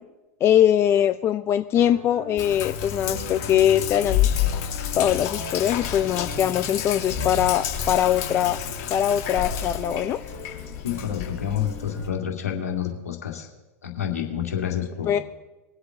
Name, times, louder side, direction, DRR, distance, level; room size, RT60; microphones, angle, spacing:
voice 1, 0.4-4.3 5.0-8.6 8.9-10.2 15.1-15.2, left 10 dB, 30° left, 11 dB, 0.5 m, -22 dB
sound 1, 1.7-12.2, right 2 dB, 70° right, 4.9 m, -41 dB
Sink (filling or washing), 2.4-12.1, left 9 dB, 50° left, 2.1 m, -29 dB
voice 2, 10.8-13.5 13.8-15.2, left 9 dB, 75° left, 2 dB, 2.4 m, -29 dB
21.5 x 8.0 x 3.8 m, 1.1 s
figure-of-eight pair, 90°, 8 cm